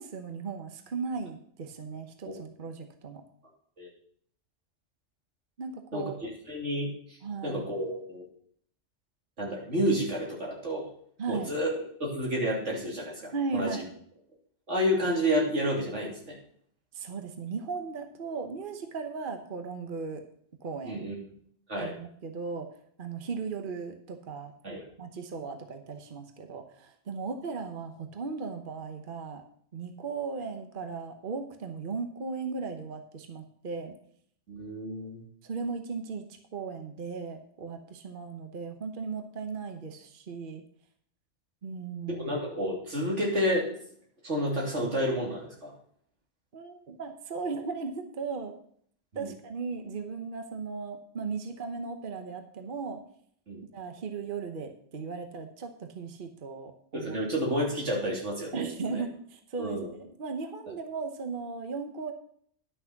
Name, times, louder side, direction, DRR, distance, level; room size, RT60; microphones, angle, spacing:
voice 1, 0.0-3.2 5.6-6.2 7.2-7.7 11.2-11.5 13.3-14.0 16.9-20.2 20.6-21.1 21.8-22.7 23.0-24.5 25.0-29.4 29.7-34.0 35.4-40.6 41.6-42.3 46.5-48.5 49.1-53.0 53.7-57.2 58.5-62.1, right 4 dB, 50° right, 6 dB, 1.1 m, -37 dB
voice 2, 5.9-7.2 7.4-8.2 9.4-10.9 11.3-13.8 14.7-16.4 20.8-21.1 21.7-22.0 24.6-24.8 34.5-35.2 42.1-43.7 44.2-45.7 49.1-49.3 53.5-53.6 56.9-58.6 58.9-59.0 59.6-59.9, equal, 75° right, -2 dB, 3.4 m, -30 dB
11.0 x 6.3 x 5.8 m, 0.62 s
omnidirectional pair, 1.2 m